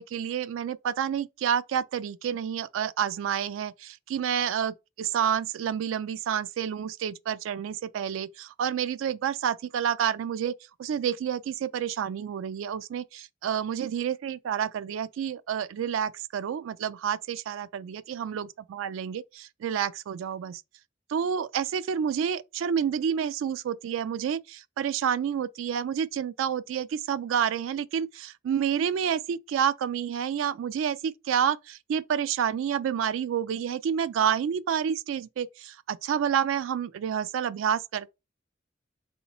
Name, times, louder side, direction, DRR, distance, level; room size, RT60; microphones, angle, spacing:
voice 1, 0.0-20.6 21.1-38.1, right 8 dB, 90° right, 0.3 m, -29 dB
3.8 x 2.8 x 4.2 m
head